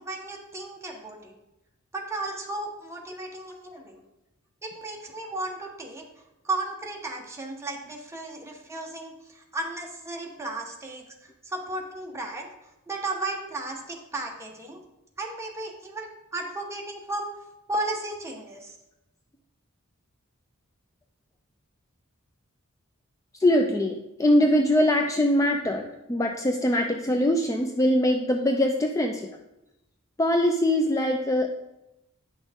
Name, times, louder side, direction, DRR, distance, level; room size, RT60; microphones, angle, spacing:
voice 1, 0.0-1.3 1.9-4.0 4.6-6.0 6.4-12.5 12.9-14.8 15.2-17.3 17.7-18.8, right 2 dB, 15° right, 0 dB, 1.1 m, -34 dB
voice 2, 23.4-29.3 30.2-31.5, left 1 dB, 15° left, 3 dB, 0.4 m, -22 dB
9.6 x 6.1 x 3.5 m, 0.92 s
head